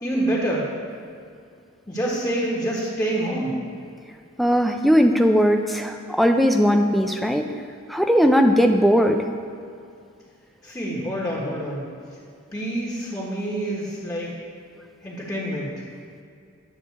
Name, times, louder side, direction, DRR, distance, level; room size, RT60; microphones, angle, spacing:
voice 1, 0.0-0.7 1.9-3.6 10.6-11.9 12.5-14.3 15.0-15.7, right 1 dB, 15° left, -6 dB, 1.3 m, -26 dB
voice 2, 4.4-7.4 7.9-9.2, equal, ahead, 4 dB, 0.4 m, -18 dB
10.0 x 3.7 x 7.0 m, 2.4 s
head